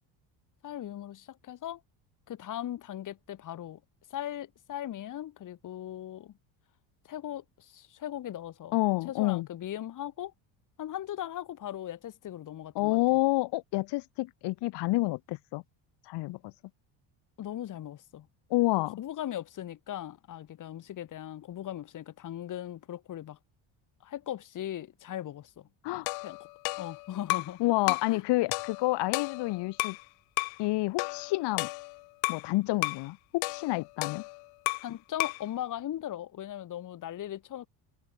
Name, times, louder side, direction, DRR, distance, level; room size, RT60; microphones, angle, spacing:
voice 1, 0.6-1.8 2.3-3.8 4.1-6.4 7.0-8.7 9.1-10.3 10.8-13.0 17.4-18.3 19.0-23.4 24.0-25.7 26.2-26.4 26.8-27.6 27.9-28.2 34.8-37.7, left 12 dB, 45° left, 1.6 m, -39 dB
voice 2, 8.7-9.5 12.7-15.6 16.1-16.5 18.5-19.0 25.8-26.1 27.6-30.0 30.6-31.7 32.3-34.2, left 20 dB, 65° left, 1.0 m, -28 dB
sound 1, 26.1-27.6 27.9-28.2 28.5-30.0 30.4-30.6 31.0-32.5 32.8-33.1 33.4-34.9 35.2-35.5, left 35 dB, 90° left, 0.7 m, -33 dB
cardioid pair, 120°, 45 cm